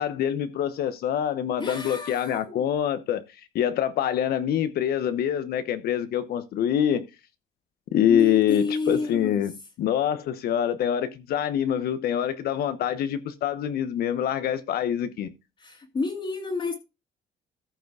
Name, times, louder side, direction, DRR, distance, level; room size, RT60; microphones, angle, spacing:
voice 1, 0.0-3.2 3.5-7.1 7.9-15.3, left 10 dB, 65° left, 0.9 m, -25 dB
voice 2, 1.6-2.7 8.1-9.4 15.6-16.7, left 3 dB, 30° left, 2.1 m, -30 dB
14.0 x 5.0 x 4.8 m
cardioid pair, 110°, 17 cm